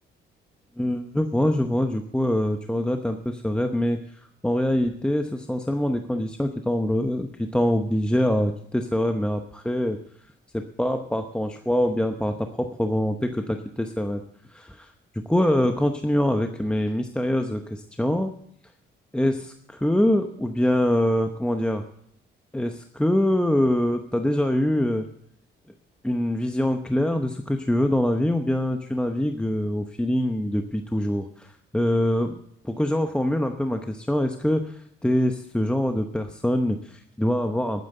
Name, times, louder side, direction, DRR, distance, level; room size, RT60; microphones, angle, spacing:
voice 1, 0.8-10.0 10.5-14.2 14.5-18.3 19.1-21.8 22.5-25.1 26.0-37.8, left 1 dB, 5° left, 5 dB, 0.8 m, -24 dB
12.0 x 9.3 x 6.6 m, 0.68 s
cardioid pair, 90°, 20 cm